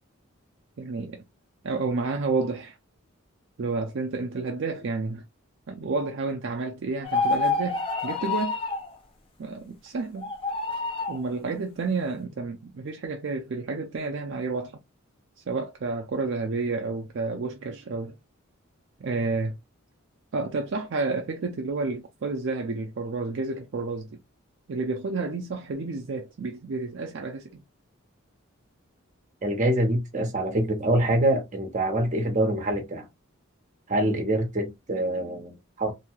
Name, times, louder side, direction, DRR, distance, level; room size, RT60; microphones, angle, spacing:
voice 1, 0.8-1.2 1.6-2.8 3.6-5.2 5.7-8.6 9.4-10.3 11.1-14.8 15.5-18.2 19.0-19.6 20.3-24.1 24.7-27.6, right 3 dB, 55° right, 0.4 m, -30 dB
sound 1, 7.0-8.9 10.2-11.2, left 3 dB, 25° left, 0.4 m, -27 dB
voice 2, 29.4-33.1 33.9-35.9, right 1 dB, 35° right, 0.8 m, -25 dB
2.7 x 2.3 x 2.9 m
head